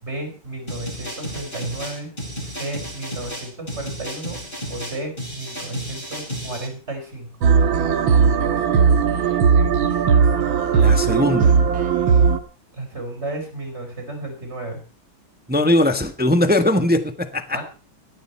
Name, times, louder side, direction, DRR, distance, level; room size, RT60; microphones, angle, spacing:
voice 1, 0.0-2.1 2.4-4.4 4.7-7.3 12.7-14.8 17.5-17.6, right 2 dB, 30° right, 5 dB, 4.7 m, -33 dB
sound 1, 0.7-6.7, equal, 25° left, 7.3 m, -33 dB
sound 2, 7.4-12.4, right 6 dB, 85° right, 2.1 m, -17 dB
voice 2, 10.7-11.6 15.5-17.6, left 1 dB, 5° right, 8 dB, 0.9 m, -20 dB
17.5 x 14.0 x 4.4 m, 0.38 s
omnidirectional pair, 2.1 m